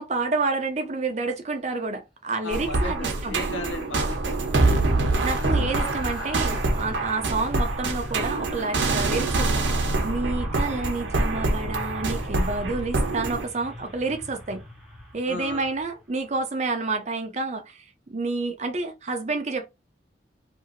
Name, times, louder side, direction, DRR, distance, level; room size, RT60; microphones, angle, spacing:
voice 1, 0.0-3.4 5.2-9.7 10.0-14.6 15.1-19.7, right 3 dB, 40° right, 0.6 m, -29 dB
voice 2, 2.4-5.9 9.0-9.2 15.3-15.7, left 2 dB, 85° left, 0.7 m, -37 dB
sound 1, 2.5-13.5, right 2 dB, 85° right, 0.8 m, -25 dB
sound 2, 3.0-16.4 16.7-16.9, left 1 dB, ahead, 0.8 m, -41 dB
2.8 x 2.6 x 2.5 m
head